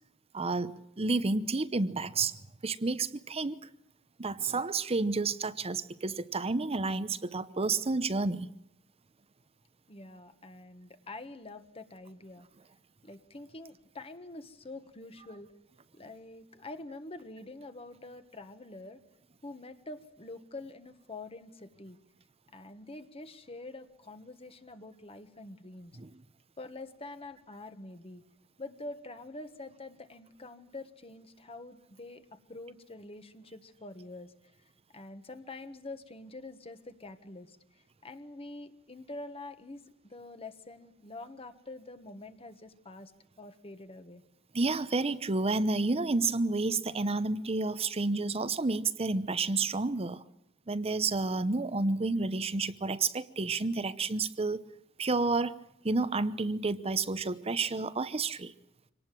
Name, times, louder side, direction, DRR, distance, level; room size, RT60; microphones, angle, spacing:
voice 1, 0.3-2.3 2.6-3.6 4.2-8.5 26.0-26.1 44.5-50.2 50.7-54.6 55.0-55.6 55.8-58.5, right 3 dB, 30° right, 14 dB, 0.8 m, -30 dB
voice 2, 9.9-12.5 13.0-15.5 15.9-19.0 19.4-22.0 22.5-26.0 26.6-28.2 28.6-34.3 34.9-37.6 38.0-43.1 43.4-44.2, left 2 dB, 30° left, 9 dB, 1.4 m, -46 dB
25.5 x 18.5 x 7.6 m, 0.83 s
head